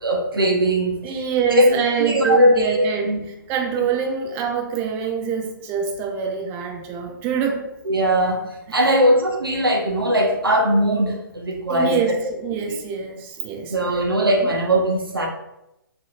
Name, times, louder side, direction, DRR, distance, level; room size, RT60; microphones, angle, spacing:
voice 1, 0.0-1.2 1.6-1.7 2.0-3.2 3.8-3.9 7.8-12.2 12.7-12.8 13.7-15.3, equal, 80° right, 1 dB, 0.7 m, -20 dB
voice 2, 1.0-3.1 3.5-7.7 8.8-9.0 11.7-12.1 12.4-13.7 14.4-14.5, right 6 dB, 20° right, 1 dB, 0.4 m, -25 dB
4.1 x 2.5 x 2.4 m, 0.87 s
figure-of-eight pair, 130°, 12 cm